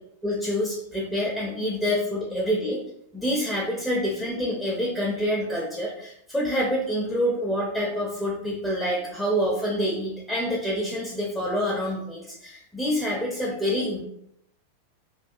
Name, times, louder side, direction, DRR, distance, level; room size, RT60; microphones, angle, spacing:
voice 1, 0.2-2.8 3.1-14.0, equal, ahead, -4 dB, 0.5 m, -27 dB
2.3 x 2.3 x 2.5 m, 0.75 s
figure-of-eight pair, 90°, 0 cm